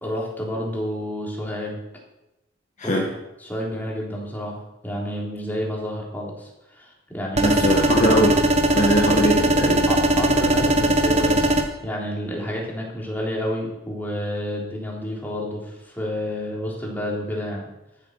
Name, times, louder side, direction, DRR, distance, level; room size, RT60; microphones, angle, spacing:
voice 1, 0.0-1.8 2.8-2.9 3.4-7.6 9.9-11.5 11.8-17.7, equal, 10° left, -3 dB, 3.6 m, -30 dB
voice 2, 2.8-3.1 7.4-8.4 8.7-9.9, equal, 40° left, 0 dB, 1.7 m, -21 dB
sound 1, 7.4-11.6, right 1 dB, 40° right, 1.3 m, -19 dB
13.0 x 8.3 x 6.5 m, 0.93 s
head